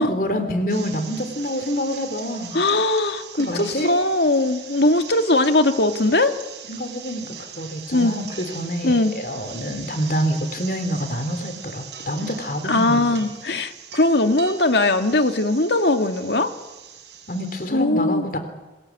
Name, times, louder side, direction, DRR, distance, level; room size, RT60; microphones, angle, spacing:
voice 1, 0.0-2.6 3.4-3.9 6.7-13.3 17.3-18.4, equal, 50° left, 8 dB, 3.5 m, -27 dB
sound 1, 0.7-17.7, right 7 dB, 75° right, 6.0 m, -40 dB
voice 2, 2.5-6.4 7.9-8.2 8.8-9.1 12.6-16.5 17.7-18.2, left 2 dB, 70° left, 7 dB, 2.0 m, -20 dB
28.0 x 21.0 x 8.5 m, 1.2 s
head